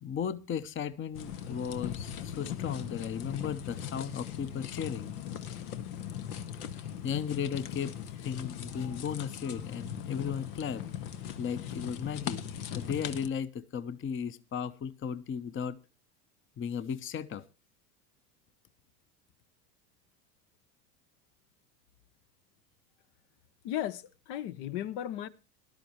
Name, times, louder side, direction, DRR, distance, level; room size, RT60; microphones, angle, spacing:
voice 1, 0.0-5.1 6.7-7.9 8.2-10.9 11.4-12.5 12.7-15.8 16.6-17.4, left 7 dB, 25° left, 0.8 m, -35 dB
sound 1, 1.1-13.3, left 9 dB, 80° left, 1.4 m, -39 dB
voice 2, 23.6-25.3, left 12 dB, 60° left, 1.1 m, -35 dB
18.0 x 12.0 x 3.0 m
hypercardioid pair, 90°, 46 cm